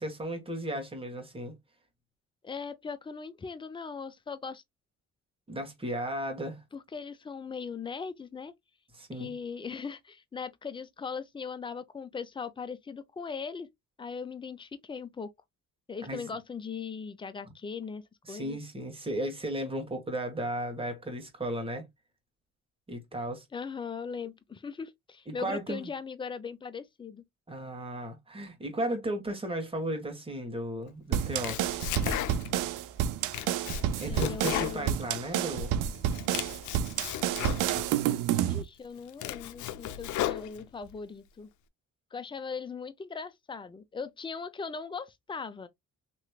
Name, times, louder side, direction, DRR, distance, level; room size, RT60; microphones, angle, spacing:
voice 1, 0.0-1.6 5.5-6.6 8.9-9.3 16.0-16.2 18.3-21.9 22.9-23.4 25.3-25.9 27.5-31.8 34.0-35.7, right 1 dB, 20° right, 1.5 m, -35 dB
voice 2, 2.4-4.6 6.7-8.5 9.1-13.7 14.0-15.3 15.9-18.0 18.3-18.6 23.5-27.2 34.1-35.0 38.3-41.5 42.1-45.7, left 5 dB, 15° left, 0.5 m, -39 dB
sound 1, 31.1-38.6, right 10 dB, 90° right, 0.5 m, -29 dB
Domestic sounds home sounds, 31.2-32.7 33.0-35.6 35.9-37.9 38.5-38.6 39.0-40.9, left 12 dB, 75° left, 0.5 m, -35 dB
3.1 x 3.0 x 2.2 m
cardioid pair, 90°, 30 cm